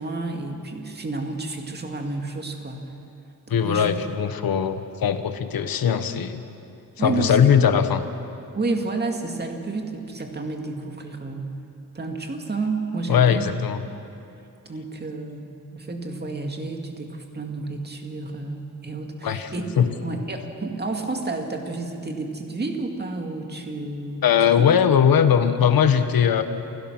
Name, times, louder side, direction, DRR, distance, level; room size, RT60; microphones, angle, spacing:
voice 1, 0.0-2.9 3.5-3.9 7.0-7.4 8.5-11.5 11.9-13.5 13.8-13.9 14.7-19.7 20.0-24.2 24.6-24.7, right 3 dB, 25° right, 3 dB, 2.3 m, -30 dB
voice 2, 3.5-6.4 7.0-8.0 13.1-13.8 19.2-19.9 24.2-26.4, left 8 dB, 70° left, 9 dB, 1.3 m, -20 dB
28.5 x 17.0 x 6.2 m, 2.6 s
wide cardioid pair, 120°, 36 cm